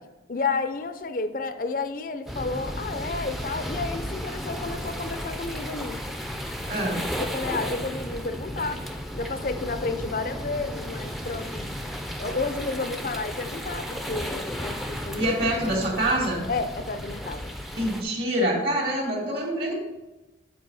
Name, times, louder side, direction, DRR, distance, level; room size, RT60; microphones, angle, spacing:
voice 1, 0.3-6.0 7.2-8.8 9.1-11.7 12.2-15.3 16.5-17.5, left 3 dB, 45° left, 10 dB, 0.5 m, -31 dB
sound 1, 2.3-18.0, equal, ahead, 0.5 m, -34 dB
voice 2, 6.7-7.0 15.2-16.4 17.7-19.7, right 1 dB, 60° right, -2 dB, 2.3 m, -25 dB
9.1 x 4.6 x 4.7 m, 1.0 s
head